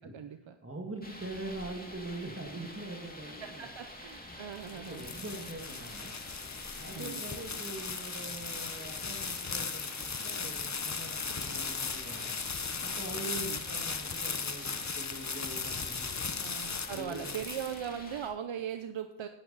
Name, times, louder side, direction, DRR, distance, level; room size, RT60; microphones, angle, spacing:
voice 1, 0.0-0.5 3.3-5.1 6.9-7.4 13.2-13.6 16.4-19.3, right 8 dB, 70° right, 8 dB, 0.7 m, -40 dB
voice 2, 0.6-3.7 4.7-6.1 6.7-12.4 12.8-14.6 15.0-16.2 16.9-17.3, right 2 dB, 25° right, 2 dB, 1.8 m, -43 dB
sound 1, 1.0-18.3, left 1 dB, 20° left, 2.3 m, -48 dB
sound 2, 4.3-18.1, left 5 dB, 35° left, 0.8 m, -37 dB
10.5 x 9.3 x 4.0 m, 0.80 s
cardioid pair, 45°, 48 cm